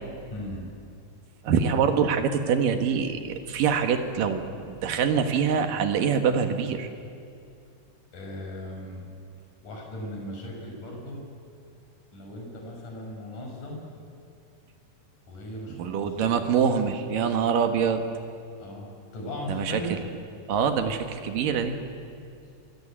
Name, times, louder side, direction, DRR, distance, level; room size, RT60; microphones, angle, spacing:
voice 1, 0.3-0.7 8.1-9.1 9.6-11.2 12.1-13.8 15.3-16.4 18.6-20.1, equal, 45° left, 0 dB, 7.2 m, -37 dB
voice 2, 1.4-6.9 15.8-18.0 19.5-20.0 20.5-21.8, right 6 dB, 60° right, 6 dB, 2.7 m, -25 dB
27.0 x 23.0 x 8.8 m, 2.4 s
omnidirectional pair, 5.1 m